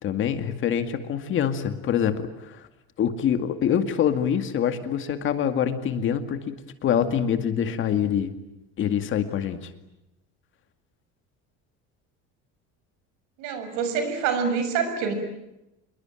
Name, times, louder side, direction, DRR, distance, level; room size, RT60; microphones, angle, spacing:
voice 1, 0.0-2.6 3.0-8.3 8.8-9.6, left 8 dB, 40° left, 9 dB, 2.1 m, -25 dB
voice 2, 13.4-15.1, right 6 dB, 75° right, 8 dB, 6.6 m, -26 dB
27.0 x 22.5 x 9.1 m, 0.90 s
cardioid pair, 160°, 31 cm